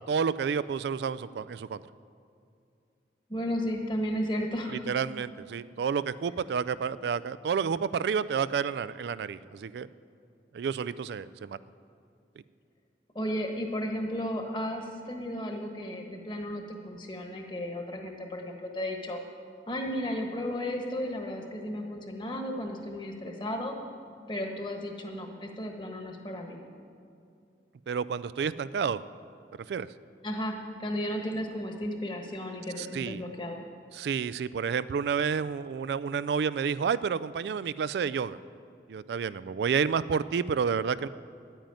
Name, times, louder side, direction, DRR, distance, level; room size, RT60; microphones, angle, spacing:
voice 1, 0.1-1.8 4.7-9.9 10.5-11.6 27.9-29.0 29.7-29.9 32.8-33.2 33.9-38.4 38.9-41.1, right 6 dB, 70° right, 16 dB, 0.3 m, -30 dB
voice 2, 3.3-4.8 13.1-19.2 19.7-23.7 24.3-26.6 30.2-33.6, equal, 25° left, 3 dB, 1.3 m, -34 dB
10.5 x 9.0 x 9.1 m, 2.5 s
head